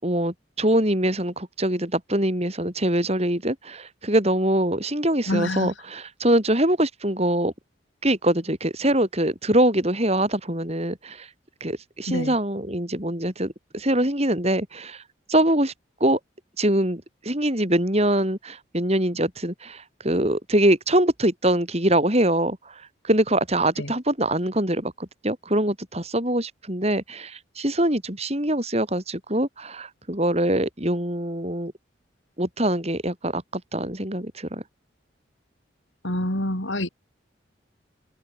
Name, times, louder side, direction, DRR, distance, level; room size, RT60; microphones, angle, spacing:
voice 1, 0.0-7.5 8.0-11.3 11.6-15.0 15.3-15.7 16.0-16.2 16.6-22.6 23.0-31.7 32.4-33.4 33.7-34.6, right 1 dB, 35° right, 5.4 m, -23 dB
voice 2, 5.3-5.7 12.1-12.4 23.8-23.9 36.0-36.9, left 1 dB, 80° left, 7.9 m, -27 dB
head